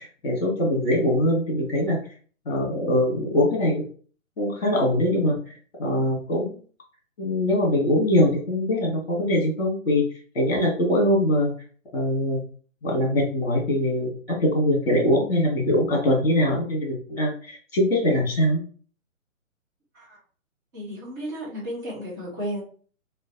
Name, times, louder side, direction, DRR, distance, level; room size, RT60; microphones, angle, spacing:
voice 1, 0.0-2.0 2.4-3.8 4.4-6.5 7.2-10.1 10.3-11.5 11.9-12.4 12.8-18.6, left 1 dB, 45° left, 0 dB, 1.6 m, -22 dB
voice 2, 20.7-22.6, equal, 15° right, -8 dB, 1.0 m, -33 dB
5.5 x 2.3 x 2.8 m, 0.42 s
figure-of-eight pair, 135°, 41 cm